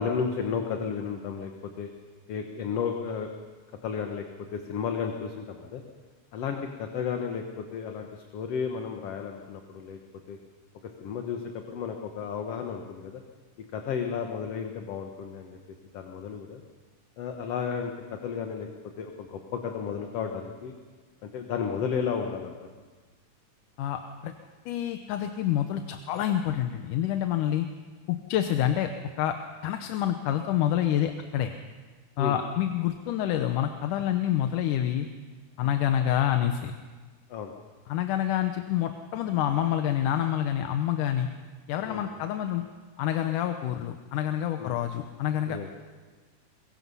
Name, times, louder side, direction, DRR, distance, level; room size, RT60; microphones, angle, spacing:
voice 1, 0.0-1.5 1.8-1.9 2.3-3.3 3.8-4.2 4.5-5.8 6.3-10.0 10.3-10.4 11.0-11.4 11.7-13.2 13.7-15.6 15.9-16.6 17.2-18.7 19.0-20.8 21.2-22.6 32.2-32.4 35.6-35.7 37.3-37.5 41.8-42.0 44.6-44.8 45.5-45.7, left 6 dB, 60° left, 3 dB, 2.1 m, -33 dB
voice 2, 23.8-24.3 24.7-27.7 28.1-28.9 29.2-29.4 29.6-31.5 32.2-35.1 35.6-36.7 37.9-41.3 41.7-42.6 43.0-45.6, left 11 dB, 90° left, 7 dB, 2.5 m, -27 dB
23.0 x 22.0 x 5.6 m, 1.4 s
omnidirectional pair, 3.5 m